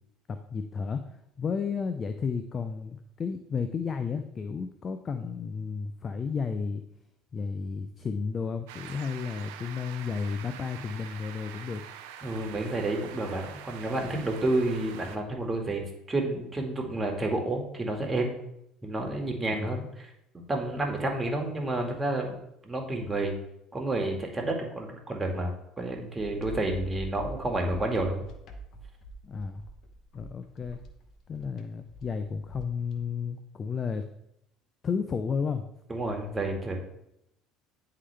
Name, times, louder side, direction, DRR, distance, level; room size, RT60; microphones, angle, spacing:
voice 1, 0.3-1.0 1.4-6.8 7.3-11.8 19.6-19.7 29.2-29.6 30.1-30.8 31.3-34.1 34.8-35.6, left 5 dB, 35° left, 8 dB, 0.5 m, -32 dB
sound 1, 8.7-15.2, right 9 dB, 85° right, 0.5 m, -45 dB
voice 2, 12.2-18.3 18.8-22.4 22.6-23.4 23.7-28.2 35.9-36.8, right 2 dB, 20° right, 1 dB, 1.7 m, -30 dB
sound 2, 26.2-33.0, equal, 55° left, 0.9 m, -43 dB
9.6 x 3.8 x 3.3 m, 0.79 s
supercardioid pair, 80°, 0 cm